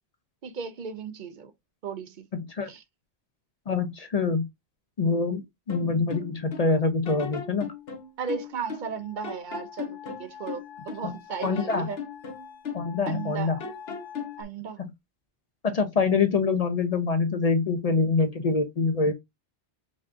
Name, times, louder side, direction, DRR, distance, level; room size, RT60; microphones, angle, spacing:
voice 1, 0.4-1.5 1.8-2.3 2.6-2.8 8.2-12.0 13.0-13.5 14.4-14.8, right 6 dB, 55° right, 0.6 m, -35 dB
voice 2, 3.7-4.4 5.0-7.7 11.0-11.1 11.4-11.9 12.7-13.6 14.8-14.9 15.6-19.1, left 4 dB, 50° left, 0.5 m, -25 dB
sound 1, 5.7-6.7 7.1-9.0 9.2-11.1 11.4-13.3 13.6-14.4, left 5 dB, 75° left, 1.0 m, -37 dB
sound 2, 7.3-14.4, left 8 dB, 80° right, 1.7 m, -47 dB
5.1 x 2.4 x 2.5 m
omnidirectional pair, 1.1 m